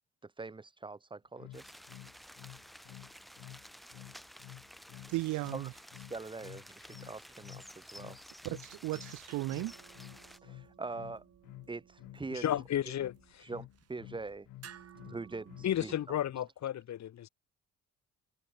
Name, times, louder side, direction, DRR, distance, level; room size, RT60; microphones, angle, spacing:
voice 1, 0.2-1.7 5.5-5.7 6.1-8.2 10.4-11.2 11.7-12.5 13.4-14.5 15.0-15.9, right 3 dB, 15° right, 0.7 m, -43 dB
sound 1, 1.4-15.8, left 16 dB, 90° left, 2.5 m, -51 dB
sound 2, 1.5-10.4, equal, ahead, 1.8 m, -53 dB
voice 2, 5.1-5.7 8.4-9.7, right 19 dB, 80° right, 0.5 m, -35 dB
sound 3, 8.5-16.5, right 8 dB, 55° right, 3.0 m, -58 dB
voice 3, 12.3-13.5 15.6-17.3, left 11 dB, 65° left, 2.0 m, -33 dB
cardioid pair, 90°, 30 cm